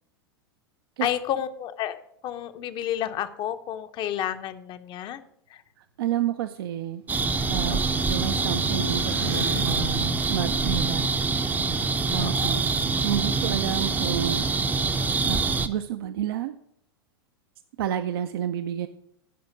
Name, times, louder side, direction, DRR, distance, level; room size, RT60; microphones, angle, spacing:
voice 1, 1.0-5.2 5.5-5.6 7.6-7.9 12.2-12.6, left 11 dB, 40° left, 11 dB, 0.7 m, -31 dB
voice 2, 6.0-7.0 7.5-11.1 12.1-12.6 13.0-14.4 15.2-16.5 17.8-18.9, right 10 dB, 65° right, 9 dB, 0.5 m, -30 dB
sound 1, 6.5-11.3, right 2 dB, 85° right, 1.4 m, -41 dB
sound 2, 7.1-15.7, right 4 dB, 15° right, 0.6 m, -25 dB
10.0 x 5.1 x 6.3 m, 0.71 s
hypercardioid pair, 95°, 13 cm